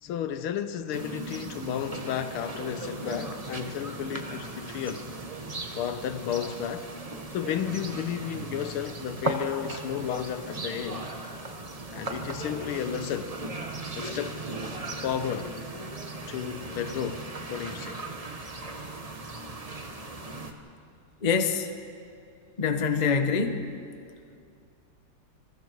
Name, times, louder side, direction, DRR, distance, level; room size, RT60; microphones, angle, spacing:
voice 1, 0.0-5.1 5.7-6.9 7.3-11.1 11.9-13.4 13.9-14.6 15.0-15.6 16.3-18.0, left 9 dB, 75° left, 1.7 m, -33 dB
sound 1, 0.9-20.5, right 2 dB, 25° right, 0.9 m, -37 dB
voice 2, 21.2-21.7 22.6-23.7, left 5 dB, 35° left, 0.7 m, -25 dB
26.5 x 21.5 x 4.6 m
omnidirectional pair, 2.4 m